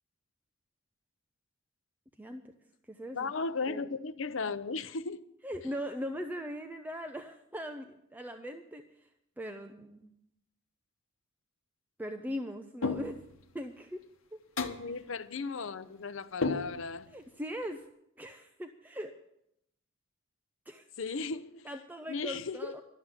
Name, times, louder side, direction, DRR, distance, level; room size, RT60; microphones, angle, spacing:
voice 1, 2.2-2.5 2.9-3.3 3.7-3.9 5.4-8.8 9.4-10.1 12.0-13.2 13.5-14.0 17.1-17.8 18.2-19.1 20.7-20.9 21.6-22.8, equal, 10° right, 0.6 m, -40 dB
voice 2, 3.1-5.2 14.6-17.1 21.0-21.7 22.1-22.8, left 4 dB, 70° left, 0.6 m, -36 dB
sound 1, 12.8-13.4 14.6-15.0 16.4-17.1, left 4 dB, 90° left, 1.0 m, -33 dB
12.0 x 7.3 x 9.7 m
head